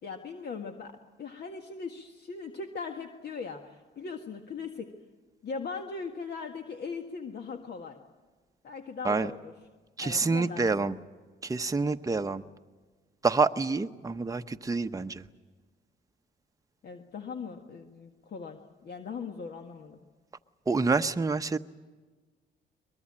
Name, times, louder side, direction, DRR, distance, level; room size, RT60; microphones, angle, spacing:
voice 1, 0.0-4.9 5.4-8.0 8.6-9.5 10.0-10.6 16.8-20.0, left 5 dB, 55° left, 4 dB, 1.7 m, -39 dB
voice 2, 10.0-11.0 11.4-12.4 13.2-15.2 20.7-21.6, right 4 dB, 15° right, 7 dB, 0.9 m, -27 dB
22.5 x 21.5 x 8.8 m, 1.4 s
cardioid pair, 90°, 20 cm